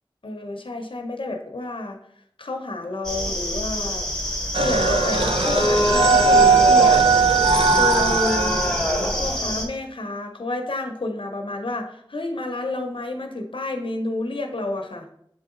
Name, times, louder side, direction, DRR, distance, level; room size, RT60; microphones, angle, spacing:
voice 1, 0.2-2.0 2.4-4.1 4.5-7.2 7.7-15.1, left 2 dB, 70° left, 4 dB, 0.7 m, -30 dB
sound 1, 3.0-9.7, left 1 dB, 10° left, 1.1 m, -25 dB
sound 2, 4.5-9.4, right 4 dB, 80° right, 0.5 m, -19 dB
7.4 x 3.8 x 3.7 m, 0.71 s
wide cardioid pair, 45°, 9 cm